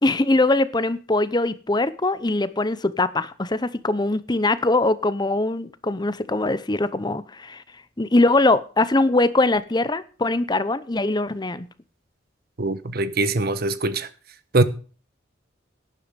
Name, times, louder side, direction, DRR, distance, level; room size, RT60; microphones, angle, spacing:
voice 1, 0.0-7.6 8.0-11.7, left 2 dB, 20° left, 0.7 m, -22 dB
voice 2, 12.6-14.1 14.5-14.6, right 2 dB, 50° right, 1.0 m, -22 dB
11.5 x 10.5 x 5.1 m
head